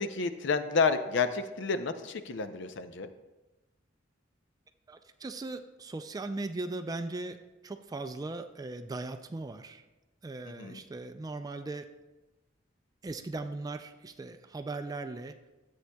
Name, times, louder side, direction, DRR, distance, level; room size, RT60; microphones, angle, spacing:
voice 1, 0.0-3.1 10.4-10.8, left 4 dB, 65° left, 10 dB, 0.6 m, -30 dB
voice 2, 4.9-7.4 7.6-9.8 10.2-11.9 13.0-15.4, right 2 dB, 20° right, 8 dB, 0.3 m, -38 dB
13.0 x 8.1 x 2.2 m, 1.1 s
head